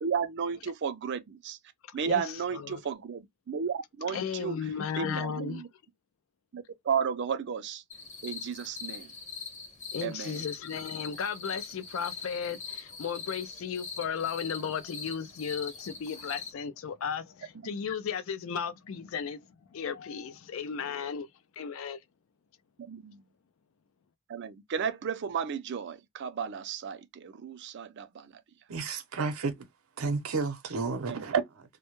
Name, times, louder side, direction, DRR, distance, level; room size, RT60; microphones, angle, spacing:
voice 1, 0.0-1.6 1.9-4.6 5.0-5.7 6.5-7.8 8.2-9.1 10.0-10.4 17.7-17.8 22.9-23.2 24.3-28.3 31.1-31.2, right 6 dB, 55° right, 0.4 m, -33 dB
voice 2, 2.0-2.8 4.1-5.6 9.9-19.4 19.7-21.3 21.6-22.0, left 7 dB, 70° left, 0.4 m, -35 dB
sound 1, 7.9-16.5, left 5 dB, 35° left, 0.9 m, -42 dB
voice 3, 28.7-29.7 30.0-31.6, right 4 dB, 85° right, 0.7 m, -31 dB
2.1 x 2.1 x 2.9 m
head